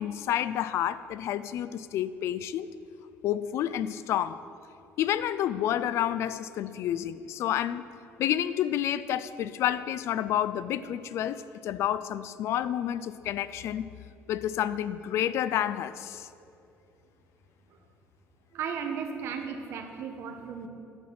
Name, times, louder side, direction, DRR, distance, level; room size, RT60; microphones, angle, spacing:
voice 1, 0.0-2.7 3.2-4.4 5.0-7.9 8.2-13.9 14.3-16.3, left 11 dB, 60° left, 15 dB, 0.4 m, -29 dB
voice 2, 18.5-20.7, right 6 dB, 55° right, 5 dB, 1.2 m, -35 dB
11.0 x 6.1 x 7.6 m, 2.6 s
cardioid pair, 150°, 5 cm